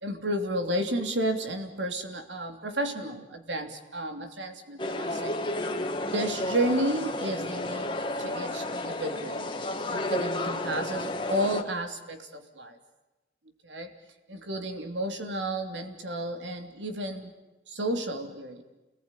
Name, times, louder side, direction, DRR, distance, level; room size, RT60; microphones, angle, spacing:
voice 1, 0.0-5.3 6.1-7.9 8.2-9.5 9.9-12.8 13.6-13.9 14.3-17.3 17.7-18.6, right 1 dB, 90° right, 6 dB, 3.1 m, -32 dB
sound 1, 4.8-11.6, left 1 dB, 25° left, 1.9 m, -32 dB
29.0 x 20.0 x 9.9 m, 1.1 s
head